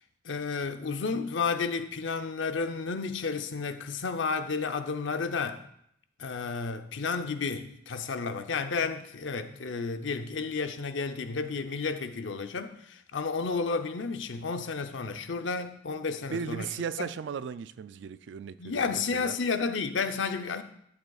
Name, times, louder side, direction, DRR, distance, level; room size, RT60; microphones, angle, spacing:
voice 1, 0.2-5.6 6.2-16.7 17.0-17.1 18.6-20.6, left 4 dB, 80° left, 0.7 m, -32 dB
voice 2, 16.3-19.3, right 6 dB, 70° right, 0.3 m, -36 dB
12.0 x 7.8 x 2.4 m
head